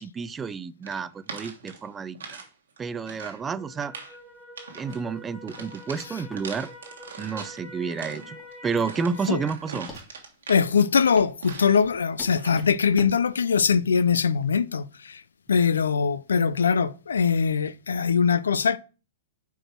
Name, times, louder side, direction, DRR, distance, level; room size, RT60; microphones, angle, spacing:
voice 1, 0.0-2.4 2.8-3.9 4.7-6.7 7.2-8.4 8.6-9.9, right 5 dB, 20° right, 0.4 m, -30 dB
sound 1, 0.8-2.5 2.8-3.4 3.8-4.2 4.6-5.0 5.5-7.6 7.9-11.9 12.3-12.7, right 4 dB, 80° right, 1.3 m, -41 dB
sound 2, 3.6-9.5, left 1 dB, 5° left, 1.9 m, -46 dB
sound 3, 4.7-17.4, left 2 dB, 20° left, 2.1 m, -49 dB
voice 2, 10.5-15.2 15.5-18.8, left 6 dB, 85° left, 0.4 m, -22 dB
5.0 x 4.6 x 4.4 m
hypercardioid pair, 115°, 0 cm